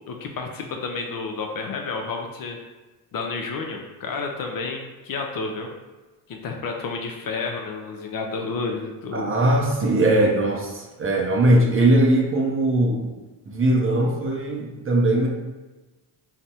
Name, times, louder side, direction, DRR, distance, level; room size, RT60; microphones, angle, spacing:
voice 1, 0.1-2.6 3.1-5.7 6.3-9.3, left 4 dB, 45° left, 2 dB, 0.5 m, -30 dB
voice 2, 9.1-13.0 13.5-15.3, right 1 dB, 25° right, -1 dB, 0.5 m, -20 dB
3.3 x 2.0 x 2.7 m, 1.2 s
supercardioid pair, 75°, 50 cm